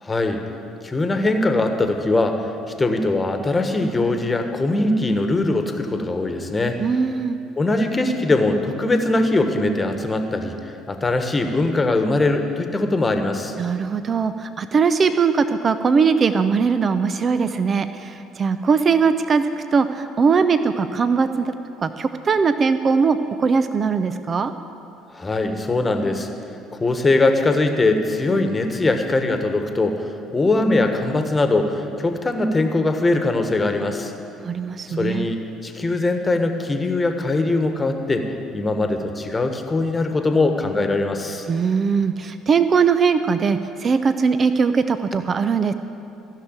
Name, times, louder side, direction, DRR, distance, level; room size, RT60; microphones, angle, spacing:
voice 1, 0.0-0.4 0.8-2.5 2.8-6.8 7.6-13.5 25.1-26.3 26.7-34.1 34.9-38.2 38.5-41.5, left 2 dB, 25° left, 6 dB, 1.3 m, -21 dB
voice 2, 6.8-7.4 13.6-21.5 21.8-24.5 34.4-35.3 41.5-45.7, right 5 dB, 40° right, 11 dB, 0.6 m, -20 dB
15.5 x 6.6 x 9.0 m, 2.7 s
hypercardioid pair, 55°, 0 cm